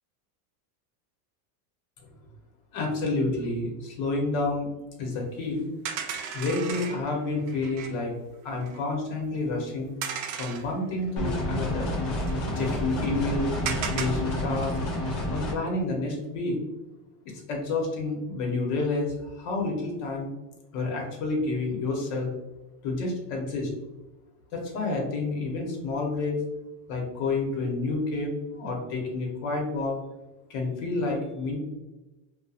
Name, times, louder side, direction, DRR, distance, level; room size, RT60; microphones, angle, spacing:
voice 1, 2.7-4.7 5.0-5.7 6.3-8.1 8.4-9.9 10.4-11.9 12.5-13.5 13.9-14.8 15.3-16.6 17.2-20.3 20.7-22.3 22.8-23.7 24.5-26.4 26.9-30.0 30.5-31.6, left 3 dB, 55° left, 0 dB, 1.0 m, -29 dB
sound 1, 5.8-8.0 8.5-8.8 10.0-11.1 11.3-11.4 11.6-12.3 13.7-14.1, right 7 dB, 80° right, 0.6 m, -34 dB
sound 2, 11.2-15.5, left 1 dB, 30° left, 0.4 m, -29 dB
2.7 x 2.3 x 2.4 m, 1.0 s
supercardioid pair, 145°, 49 cm